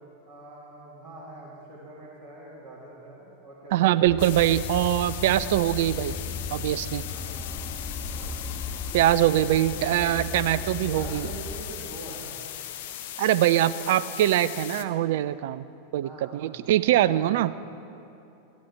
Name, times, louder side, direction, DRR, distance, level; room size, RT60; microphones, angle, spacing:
voice 1, 0.3-4.0 7.1-7.7 8.1-8.4 10.8-12.3 16.0-16.6 16.9-17.2, right 2 dB, 25° right, -8 dB, 2.5 m, -44 dB
voice 2, 3.7-6.2 6.5-7.0 8.9-11.3 13.2-15.6 15.9-17.5, right 13 dB, 55° right, 16 dB, 0.4 m, -23 dB
sound 1, 4.0-11.6, left 4 dB, 15° left, 1.6 m, -36 dB
sound 2, 4.2-14.8, left 12 dB, 55° left, 0.6 m, -38 dB
15.5 x 11.5 x 4.6 m, 2.8 s
figure-of-eight pair, 90°, 0 cm